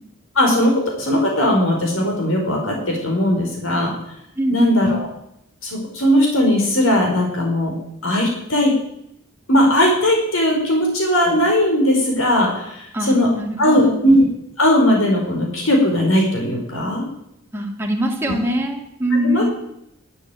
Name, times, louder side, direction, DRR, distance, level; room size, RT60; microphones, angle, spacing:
voice 1, 0.3-3.9 4.5-5.1 5.6-7.7 8.0-8.7 9.5-13.3 13.6-14.3 14.6-17.1 18.2-18.3 19.1-19.4, left 1 dB, 85° left, 0 dB, 4.9 m, -18 dB
voice 2, 4.4-4.9 12.9-14.0 17.5-19.4, equal, 10° right, -1 dB, 2.8 m, -22 dB
12.5 x 9.5 x 9.3 m, 0.78 s
head